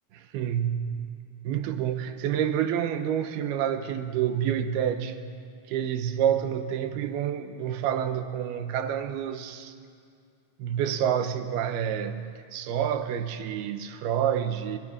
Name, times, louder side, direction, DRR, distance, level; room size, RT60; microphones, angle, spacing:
voice 1, 0.1-1.1 1.4-5.2 5.7-9.7 10.6-14.8, right 9 dB, 80° right, 8 dB, 3.0 m, -28 dB
28.5 x 28.5 x 5.1 m, 2.2 s
omnidirectional pair, 4.5 m